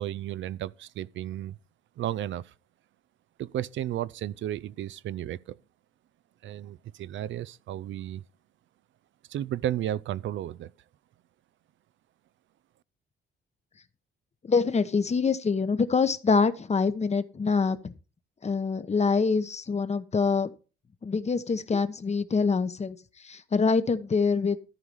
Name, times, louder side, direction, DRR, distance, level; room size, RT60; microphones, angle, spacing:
voice 1, 0.0-1.6 2.0-2.5 3.4-5.6 6.4-8.2 9.3-10.7, right 12 dB, 65° right, 0.5 m, -33 dB
voice 2, 14.4-17.9 18.4-20.5 21.0-23.0 23.2-24.6, left 5 dB, 30° left, 1.0 m, -25 dB
13.5 x 4.8 x 5.5 m
cardioid pair, 85°, 21 cm